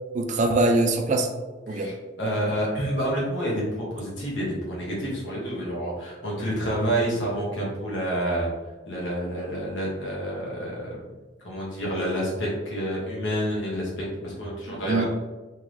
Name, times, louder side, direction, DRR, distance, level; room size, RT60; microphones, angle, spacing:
voice 1, 0.1-1.3 1.7-1.9 14.8-15.0, right 2 dB, 40° right, 5 dB, 0.4 m, -22 dB
voice 2, 1.7-8.5 8.9-11.0 11.4-15.1, right 1 dB, 85° left, -4 dB, 1.4 m, -28 dB
3.7 x 3.0 x 3.2 m, 1.2 s
head